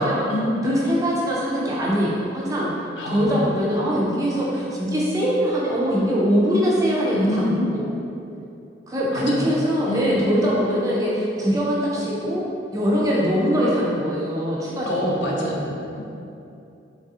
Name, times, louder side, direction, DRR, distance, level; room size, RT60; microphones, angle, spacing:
voice 1, 0.0-0.7 3.0-3.4 7.1-7.8 9.1-10.4 14.9-16.0, left 1 dB, 70° left, -3 dB, 0.5 m, -26 dB
voice 2, 0.6-2.7 3.1-7.9 8.9-12.4 12.7-15.7, equal, 20° right, -5 dB, 0.3 m, -22 dB
3.2 x 2.4 x 2.7 m, 2.7 s
head